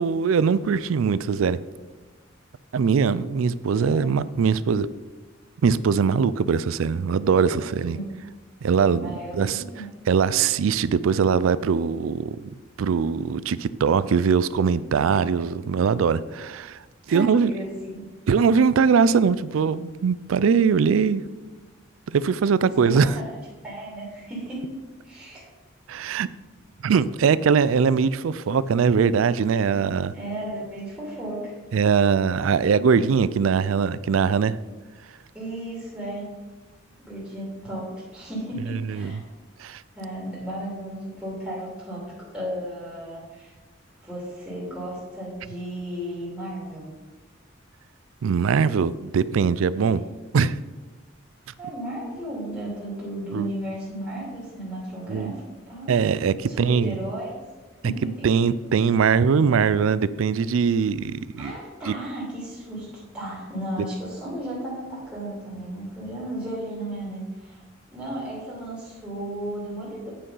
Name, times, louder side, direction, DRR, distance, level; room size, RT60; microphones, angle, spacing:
voice 1, 0.0-1.6 2.7-4.9 5.6-8.0 8.6-12.5 12.8-17.5 18.3-21.2 22.1-23.2 25.9-26.3 26.8-30.1 31.7-34.6 38.7-39.2 39.6-39.8 48.2-50.0 50.3-50.6 53.3-53.6 55.1-55.3 55.9-57.0 58.0-61.5 61.9-62.0 63.8-63.9, right 6 dB, 85° right, 17 dB, 0.4 m, -21 dB
voice 2, 9.0-9.9 17.1-18.2 22.9-23.2 23.6-24.6 25.0-25.5 30.1-31.5 35.3-36.3 37.0-39.2 39.9-42.0 42.3-43.5 44.0-46.8 49.7-50.0 51.6-55.9 56.5-57.4 57.8-58.3 61.4-62.9 63.1-67.6 67.9-70.1, right 1 dB, 5° right, -8 dB, 2.6 m, -34 dB
8.7 x 5.4 x 5.5 m, 1.2 s
head